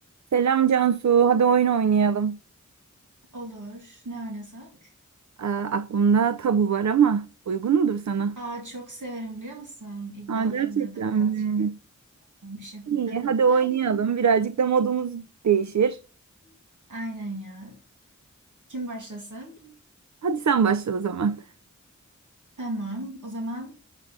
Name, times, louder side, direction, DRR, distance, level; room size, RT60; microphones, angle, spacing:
voice 1, 0.3-2.4 5.4-8.4 10.3-11.7 12.9-16.0 20.2-21.4, right 7 dB, 65° right, 0.5 m, -22 dB
voice 2, 3.3-4.9 8.4-11.5 12.4-14.0 16.4-16.6 16.9-17.8 18.7-19.7 22.6-23.8, right 1 dB, 85° right, 2.2 m, -37 dB
7.4 x 7.3 x 4.0 m
wide cardioid pair, 50°, 30 cm